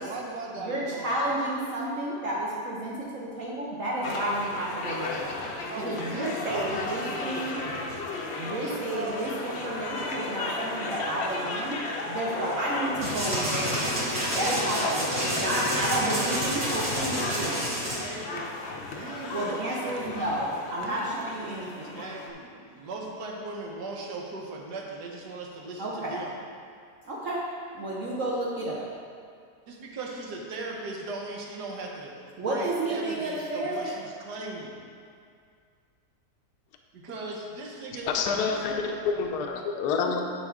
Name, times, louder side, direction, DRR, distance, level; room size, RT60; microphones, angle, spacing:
voice 1, 0.0-1.3 5.6-8.0 8.6-9.2 15.1-16.6 16.9-18.5 18.9-20.1 20.8-21.1 21.9-26.3 29.7-34.8 36.9-38.1 38.4-39.0, right 2 dB, 85° right, 0 dB, 1.5 m, -38 dB
voice 2, 0.6-5.4 5.8-7.6 8.3-17.7 19.3-22.0 25.8-26.2 27.0-27.5 27.8-29.0 32.4-34.0, right 1 dB, 60° right, -5 dB, 1.1 m, -31 dB
sound 1, 4.0-22.3, left 3 dB, 55° left, 0.7 m, -35 dB
sound 2, 13.0-18.0, equal, 40° right, 2.2 m, -29 dB
voice 3, 38.1-40.2, left 5 dB, 80° left, 3 dB, 1.1 m, -27 dB
10.5 x 4.7 x 3.6 m, 2.2 s
omnidirectional pair, 1.7 m